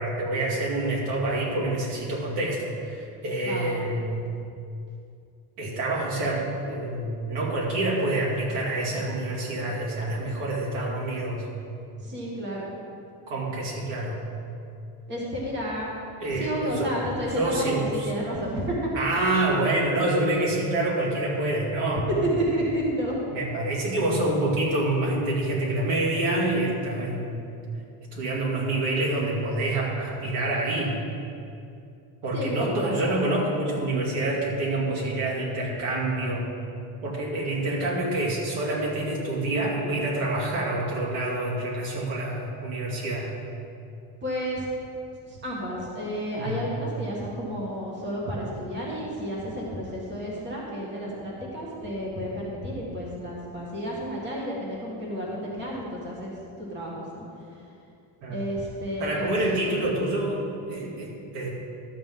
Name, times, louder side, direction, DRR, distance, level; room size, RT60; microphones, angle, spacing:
voice 1, 0.0-4.2 5.6-11.5 13.3-14.2 16.2-17.0 17.3-18.1 18.9-22.1 23.3-27.5 28.1-31.0 32.2-36.5 37.0-43.3 46.4-46.7 58.2-58.4 59.0-61.5, right 2 dB, 80° right, -4 dB, 2.5 m, -27 dB
voice 2, 3.4-3.7 12.0-12.8 15.1-15.9 16.3-18.9 22.4-23.1 32.3-33.2 44.2-44.7 45.3-57.6 58.3-59.8, equal, 25° right, -4 dB, 1.7 m, -31 dB
12.5 x 7.6 x 3.7 m, 2.6 s
cardioid pair, 180°, 44 cm